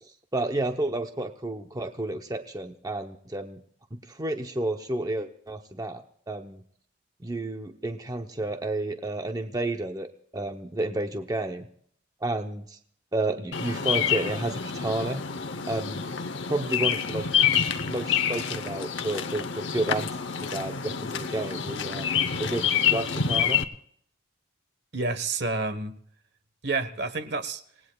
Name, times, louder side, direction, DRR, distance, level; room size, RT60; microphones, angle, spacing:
voice 1, 0.0-3.6 3.9-6.6 7.2-10.1 10.3-11.7 12.2-12.8 13.1-15.2 15.7-16.1 16.5-17.3 17.9-22.1 22.4-23.6, right 2 dB, 20° right, 6 dB, 0.7 m, -31 dB
Bird vocalization bird call bird song, 13.5-23.6, left 7 dB, 70° left, 0.9 m, -27 dB
voice 2, 24.9-26.0 26.6-27.6, right 3 dB, 60° right, 12 dB, 1.2 m, -29 dB
27.5 x 18.0 x 2.3 m, 0.62 s
head